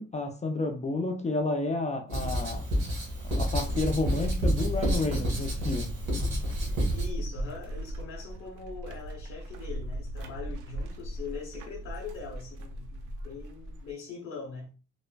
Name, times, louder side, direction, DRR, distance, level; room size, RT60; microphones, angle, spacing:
voice 1, 0.0-2.6 3.3-5.9, left 2 dB, 25° left, 0.4 m, -31 dB
Writing, 2.1-7.1, right 1 dB, 70° right, 1.4 m, -29 dB
sound 1, 3.1-13.9, right 1 dB, 85° right, 0.5 m, -37 dB
voice 2, 6.9-14.7, left 5 dB, 55° left, 0.9 m, -42 dB
3.3 x 2.0 x 2.2 m
cardioid pair, 90°, 30 cm